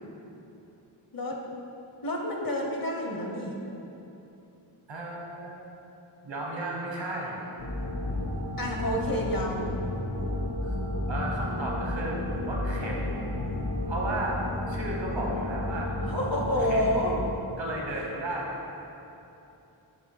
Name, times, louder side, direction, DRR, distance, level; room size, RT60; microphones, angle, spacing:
voice 1, 1.1-1.4 2.0-3.6 8.6-9.7 16.1-17.2, equal, 50° left, 1 dB, 0.9 m, -29 dB
voice 2, 4.9-5.6 6.2-7.4 10.6-10.8 11.1-12.2 12.5-13.2 13.9-14.4 14.7-16.2 16.6-17.1 17.6-18.5, right 1 dB, 75° right, -2 dB, 1.3 m, -34 dB
sound 1, 7.6-17.3, left 1 dB, 90° left, 1.1 m, -32 dB
7.3 x 3.5 x 4.7 m, 2.9 s
wide cardioid pair, 65°, 45 cm